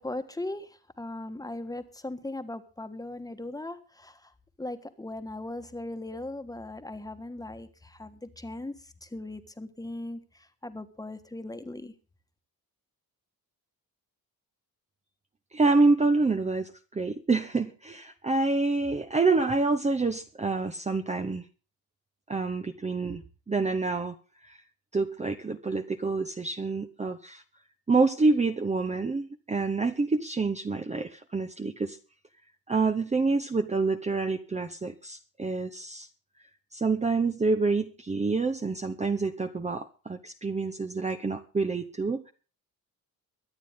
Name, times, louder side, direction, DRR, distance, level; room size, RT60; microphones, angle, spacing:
voice 1, 0.0-4.3 4.6-11.9, left 2 dB, 10° left, 8 dB, 1.5 m, -39 dB
voice 2, 15.5-21.4 22.3-24.2 24.5-24.6 24.9-27.4 27.9-32.0 32.7-36.1 36.7-42.3, right 3 dB, 20° right, 7 dB, 0.9 m, -27 dB
23.5 x 9.7 x 3.7 m, 0.36 s
wide cardioid pair, 160°, 36 cm